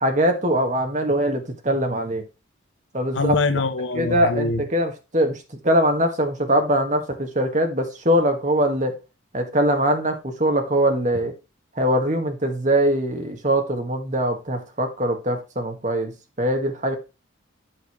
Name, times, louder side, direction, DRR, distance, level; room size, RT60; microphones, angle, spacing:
voice 1, 0.0-2.2 2.9-3.4 3.9-8.9 9.3-11.4 11.8-17.0, equal, 35° right, 1.6 m, -22 dB
voice 2, 3.1-4.6, left 3 dB, 70° left, 0.9 m, -23 dB
9.2 x 6.7 x 3.1 m
head